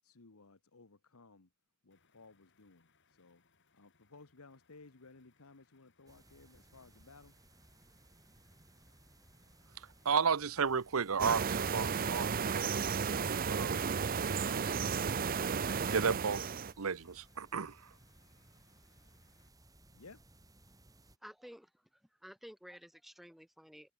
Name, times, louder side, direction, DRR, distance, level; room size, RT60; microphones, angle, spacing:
voice 1, 0.0-1.5 1.9-2.8 3.2-3.4 3.8-7.3 20.0-20.2, left 3 dB, 85° left, 1.3 m, -58 dB
sound 1, 1.9-19.5, left 4 dB, 55° left, 7.9 m, -74 dB
sound 2, 6.1-21.2, right 1 dB, 15° right, 3.1 m, -62 dB
voice 2, 10.0-12.7 13.5-13.9 14.3-14.8 15.9-16.5 16.8-17.8, right 6 dB, 80° right, 0.8 m, -33 dB
sound 3, 11.2-16.7, right 6 dB, 40° right, 0.6 m, -33 dB
voice 3, 21.2-21.7 22.2-23.9, equal, ahead, 0.7 m, -52 dB
head